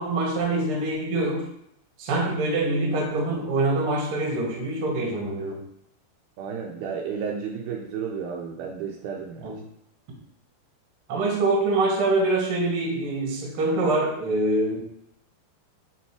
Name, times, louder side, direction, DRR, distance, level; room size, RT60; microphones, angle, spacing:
voice 1, 0.0-1.4 2.0-5.6 9.4-9.6 11.1-14.8, right 2 dB, 60° right, 0 dB, 1.4 m, -24 dB
voice 2, 6.4-9.5, right 6 dB, 80° right, 0 dB, 2.3 m, -32 dB
9.1 x 3.1 x 4.6 m, 0.74 s
omnidirectional pair, 4.9 m